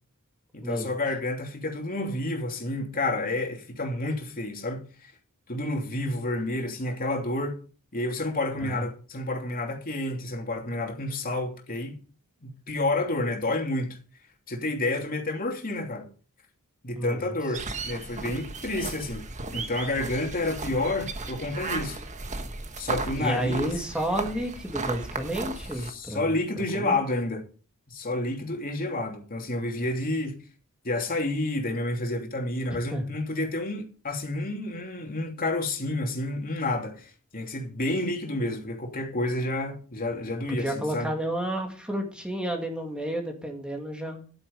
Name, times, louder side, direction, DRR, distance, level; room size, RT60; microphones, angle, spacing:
voice 1, 0.5-4.8 5.5-7.6 7.9-12.0 12.4-14.0 14.5-16.1 16.8-19.2 19.5-22.0 22.8-23.7 25.8-27.4 27.9-30.3 30.8-41.1, left 2 dB, 40° left, 3.0 m, -29 dB
voice 2, 16.9-17.3 23.2-26.3 26.7-27.0 32.9-33.0 40.5-44.2, right 1 dB, 5° right, 2.3 m, -31 dB
sound 1, 17.5-25.9, right 3 dB, 35° right, 1.5 m, -35 dB
11.5 x 9.2 x 5.4 m
head